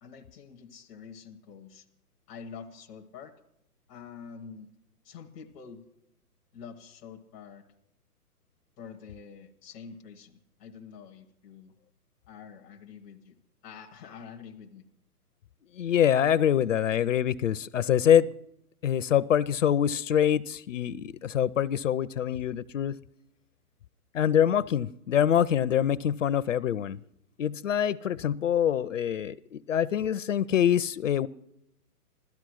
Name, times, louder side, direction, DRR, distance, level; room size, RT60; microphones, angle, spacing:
voice 1, 0.0-1.9 2.3-3.3 3.9-4.7 5.0-5.9 6.5-7.7 8.8-11.7 12.3-13.4 13.6-14.8, left 6 dB, 5° left, 0 dB, 0.5 m, -46 dB
voice 2, 15.8-18.3 18.8-23.0 24.1-27.0 27.4-31.3, left 9 dB, 55° left, 15 dB, 0.5 m, -25 dB
16.5 x 13.0 x 6.1 m, 0.80 s
hypercardioid pair, 150°, 47 cm